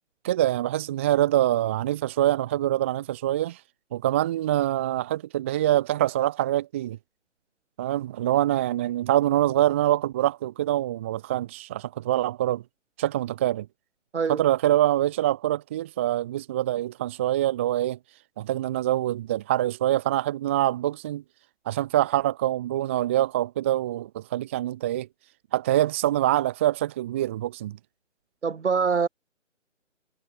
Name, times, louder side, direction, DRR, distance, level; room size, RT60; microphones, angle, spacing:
voice 1, 0.2-3.6 3.9-7.0 7.8-12.6 13.0-13.7 14.3-18.0 18.4-21.2 21.7-25.1 25.5-27.8, right 13 dB, 10° right, 0.7 m, -25 dB
voice 2, 28.4-29.1, right 5 dB, 65° right, 2.6 m, -24 dB
figure-of-eight pair, 150°, 38 cm